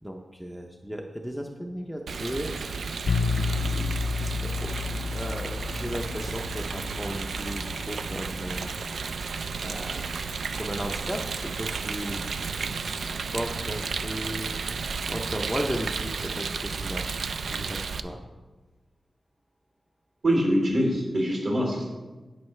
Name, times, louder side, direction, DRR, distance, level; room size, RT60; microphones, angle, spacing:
voice 1, 0.0-2.6 3.2-4.7 5.1-8.7 9.6-10.2 10.6-14.6 15.1-18.2, equal, 5° right, 2 dB, 0.6 m, -36 dB
Rain, 2.1-18.0, right 5 dB, 70° right, 0.4 m, -33 dB
sound 1, 3.1-8.8, left 4 dB, 75° left, 0.5 m, -31 dB
voice 2, 20.2-21.8, equal, 55° right, -1 dB, 3.0 m, -24 dB
11.0 x 8.7 x 3.2 m, 1.2 s
wide cardioid pair, 170°, 0 cm